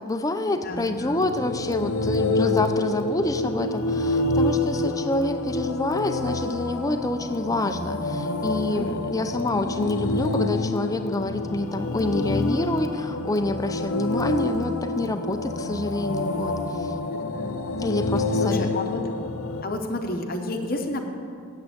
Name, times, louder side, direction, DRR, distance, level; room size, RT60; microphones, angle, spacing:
voice 1, 0.0-16.9 17.8-18.7, left 2 dB, 15° left, 8 dB, 0.4 m, -27 dB
voice 2, 0.6-1.2 2.4-2.7 8.7-9.2 17.3-17.6 18.4-19.0 19.6-21.1, left 1 dB, 40° left, 4 dB, 0.8 m, -31 dB
sound 1, 0.9-19.6, left 2 dB, 80° left, 0.6 m, -27 dB
8.6 x 7.6 x 8.5 m, 2.3 s
head